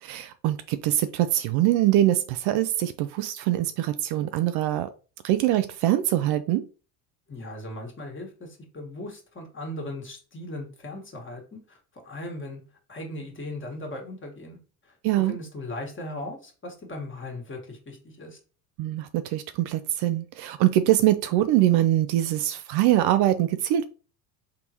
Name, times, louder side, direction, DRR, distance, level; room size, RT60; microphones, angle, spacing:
voice 1, 0.0-4.9 5.2-6.7 15.0-15.3 18.8-23.8, right 13 dB, 55° right, 0.5 m, -23 dB
voice 2, 7.3-12.6 12.9-14.6 14.8-18.4, left 1 dB, 25° left, 1.7 m, -38 dB
3.8 x 3.6 x 3.0 m
hypercardioid pair, 70°, 47 cm